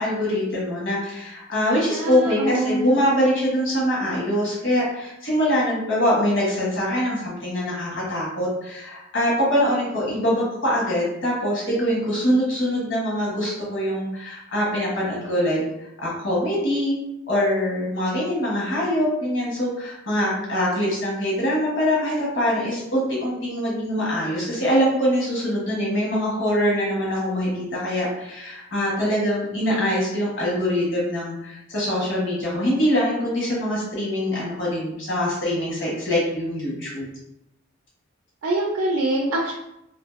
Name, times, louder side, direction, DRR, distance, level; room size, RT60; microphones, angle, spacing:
voice 1, 0.0-15.6 16.0-16.9 17.3-37.1, equal, 65° left, -5 dB, 1.1 m, -23 dB
voice 2, 1.8-2.8 38.4-39.5, right 1 dB, 85° right, -2 dB, 0.4 m, -24 dB
2.6 x 2.4 x 2.4 m, 0.84 s
head